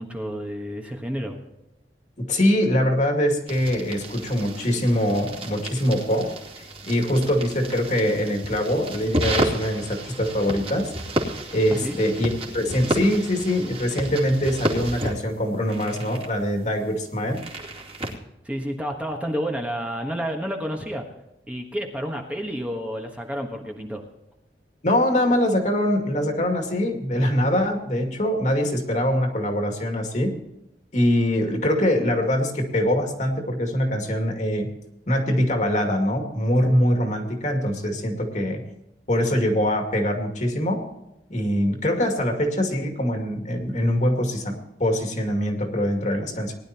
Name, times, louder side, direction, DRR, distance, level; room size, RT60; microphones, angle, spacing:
voice 1, 0.0-1.4 11.7-12.0 18.4-21.1 21.5-24.0, equal, 10° right, 1 dB, 1.3 m, -30 dB
voice 2, 2.2-6.3 6.6-10.9 11.5-17.4 24.8-30.4 30.9-34.7 35.1-38.6 39.1-40.8 41.3-46.5, equal, 45° left, 3 dB, 2.3 m, -23 dB
sound 1, 3.5-18.2, right 1 dB, 35° right, 2.6 m, -32 dB
19.5 x 11.5 x 2.9 m, 0.89 s
head